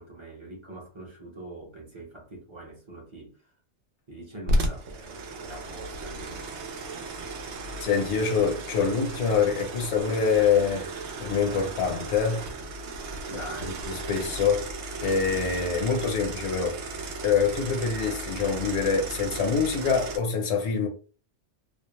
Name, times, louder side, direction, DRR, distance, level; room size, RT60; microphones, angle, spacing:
voice 1, 0.0-3.3 4.1-6.6 13.3-13.8, right 1 dB, 30° right, 0.7 m, -43 dB
sound 1, 4.5-20.2, right 1 dB, 75° right, 0.9 m, -34 dB
voice 2, 7.8-12.4 13.6-14.7 15.0-16.8 17.2-20.9, left 6 dB, 70° left, 1.0 m, -25 dB
2.5 x 2.0 x 3.0 m
omnidirectional pair, 1.2 m